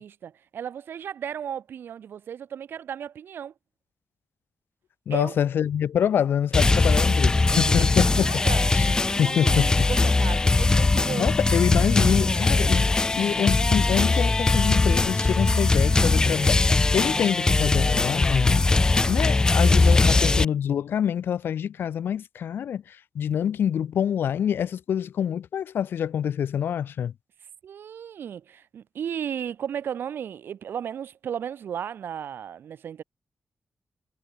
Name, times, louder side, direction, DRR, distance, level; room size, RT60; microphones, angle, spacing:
voice 1, 0.0-3.5 5.1-5.4 7.5-8.7 9.2-11.3 19.9-20.5 27.6-33.0, right 8 dB, 90° right, 0.9 m, -35 dB
voice 2, 5.1-8.3 8.7-8.9 9.2-9.9 11.2-16.6 16.9-18.7 19.1-27.1, left 9 dB, 85° left, 0.4 m, -26 dB
sound 1, 6.5-20.5, left 3 dB, 20° left, 0.4 m, -20 dB
wide cardioid pair, 175°, 4 cm